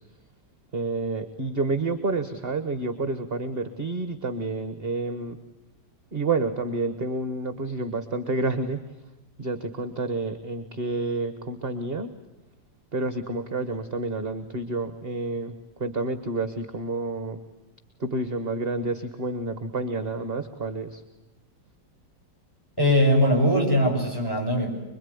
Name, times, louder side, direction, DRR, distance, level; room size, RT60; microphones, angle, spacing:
voice 1, 0.7-5.4 6.1-8.8 9.4-12.1 12.9-15.5 15.8-17.4 18.0-21.0, right 3 dB, 35° right, 10 dB, 1.6 m, -29 dB
voice 2, 22.8-24.7, equal, 10° left, 3 dB, 6.8 m, -21 dB
26.0 x 22.5 x 9.8 m, 1.0 s
omnidirectional pair, 2.1 m